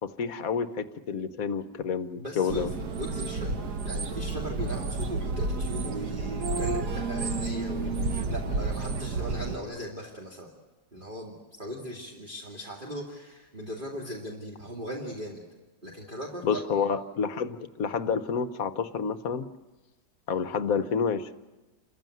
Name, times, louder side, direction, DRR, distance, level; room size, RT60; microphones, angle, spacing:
voice 1, 0.0-2.7 16.4-19.4 20.3-21.3, left 6 dB, 55° left, 11 dB, 1.2 m, -29 dB
voice 2, 2.2-3.5 3.8-10.5 10.9-11.3 11.6-15.4 15.8-16.9, equal, 25° right, -3 dB, 2.6 m, -38 dB
sound 1, 2.5-9.6, right 3 dB, 65° right, 1.7 m, -31 dB
28.0 x 15.0 x 9.2 m, 1.1 s
omnidirectional pair, 1.9 m